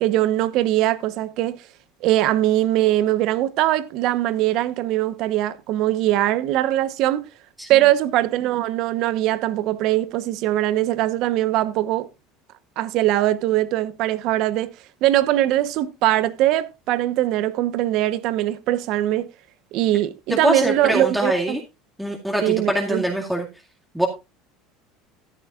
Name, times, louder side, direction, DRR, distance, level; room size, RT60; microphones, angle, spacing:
voice 1, 0.0-1.6 2.0-7.2 7.7-12.1 12.8-14.7 15.0-19.3 19.7-21.3 22.4-23.0, right 14 dB, 60° right, 1.1 m, -21 dB
voice 2, 20.3-21.6 22.0-23.4 23.9-24.1, equal, 5° right, 2.1 m, -23 dB
14.0 x 10.5 x 2.5 m
supercardioid pair, 115°, 0 cm